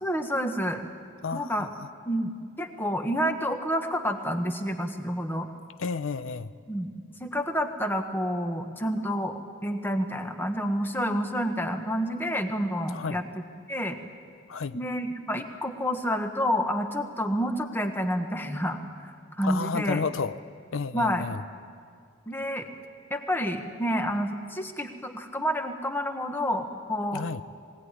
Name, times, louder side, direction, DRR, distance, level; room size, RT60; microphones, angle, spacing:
voice 1, 0.0-0.8 1.3-1.7 2.0-5.5 6.7-6.9 7.2-13.2 13.7-14.0 14.7-20.0 20.9-21.3 22.3-22.7 23.1-27.2, equal, 10° left, 6 dB, 1.3 m, -29 dB
voice 2, 1.2-1.7 5.8-6.5 12.9-13.2 14.5-14.8 19.4-20.4 20.7-21.4 27.1-27.4, left 5 dB, 75° left, 13 dB, 0.6 m, -31 dB
21.5 x 17.5 x 9.7 m, 2.2 s
head